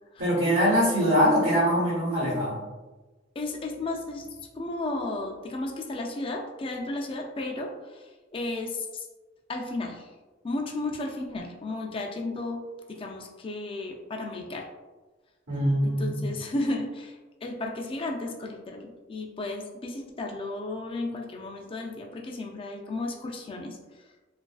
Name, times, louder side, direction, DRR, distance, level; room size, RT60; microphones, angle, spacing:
voice 1, 0.2-2.6 15.5-16.2, equal, 70° right, -8 dB, 1.0 m, -23 dB
voice 2, 3.4-9.1 9.5-10.1 10.4-12.6 12.9-14.7 15.8-17.2 17.4-23.8, left 2 dB, 30° left, 1 dB, 0.3 m, -34 dB
3.0 x 2.4 x 2.3 m, 1.2 s
head